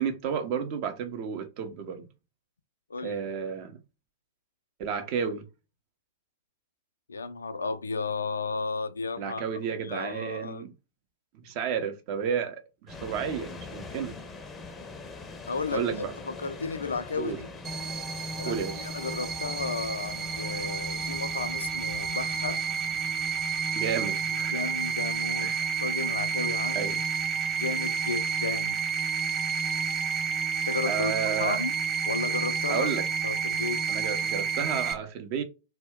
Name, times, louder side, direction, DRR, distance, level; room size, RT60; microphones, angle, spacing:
voice 1, 0.0-2.0 3.0-3.8 4.8-5.4 9.2-10.7 11.3-14.2 15.7-16.1 17.2-17.4 18.4-18.9 23.8-24.6 25.4-25.7 26.7-27.0 30.9-31.6 32.7-33.0 33.9-35.4, right 7 dB, 45° right, 0.6 m, -32 dB
voice 2, 2.9-3.2 7.1-9.4 9.8-10.6 15.5-17.5 18.4-22.6 24.5-26.9 27.6-28.8 30.7-31.1 31.4-31.7 32.0-32.9 33.2-33.8, left 4 dB, 80° left, 0.3 m, -33 dB
sound 1, 12.9-29.9, left 3 dB, 20° left, 0.5 m, -45 dB
sound 2, 17.6-34.9, right 6 dB, 25° right, 0.9 m, -30 dB
2.2 x 2.1 x 3.5 m
figure-of-eight pair, 95°, 0 cm